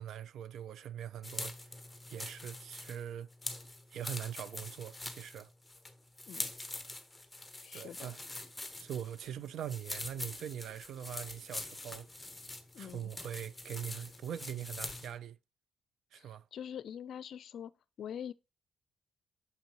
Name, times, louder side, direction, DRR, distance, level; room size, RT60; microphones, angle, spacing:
voice 1, 0.0-1.8 2.1-3.3 3.9-5.5 7.7-8.2 8.8-12.1 12.8-15.4 16.1-16.4, right 10 dB, 70° right, 0.4 m, -42 dB
sound 1, 1.2-15.2, left 2 dB, 10° left, 1.0 m, -44 dB
voice 2, 7.6-8.1 12.7-13.1 16.1-17.7 18.0-18.3, left 9 dB, 65° left, 0.4 m, -44 dB
6.9 x 5.2 x 2.9 m
cardioid pair, 90°, 0 cm